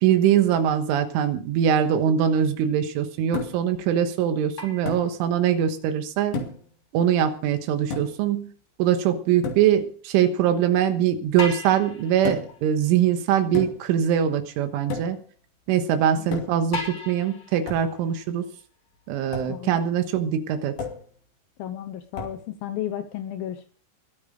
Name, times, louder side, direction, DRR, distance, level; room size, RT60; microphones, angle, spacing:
voice 1, 0.0-6.4 6.9-8.5 8.8-15.2 15.7-18.5 19.1-20.8, right 9 dB, 85° right, 8 dB, 3.7 m, -22 dB
sound 1, 3.3-3.8 4.9-5.1 6.3-6.7 7.9-8.3 9.4-9.7 12.2-12.6 13.5-14.0 14.9-15.3 16.3-16.7 17.7-17.9 19.3-19.6 20.8-21.1 22.1-22.4, left 3 dB, 50° left, 4.2 m, -32 dB
sound 2, 4.6-5.7 8.7-8.8 11.4-14.2 14.7-14.8 15.8-15.9 16.7-19.6 20.0-20.1 21.1-21.2, left 3 dB, 30° left, 4.5 m, -38 dB
voice 2, 21.6-23.7, left 11 dB, 80° left, 7 dB, 2.1 m, -33 dB
22.0 x 9.0 x 5.1 m, 0.43 s
omnidirectional pair, 5.6 m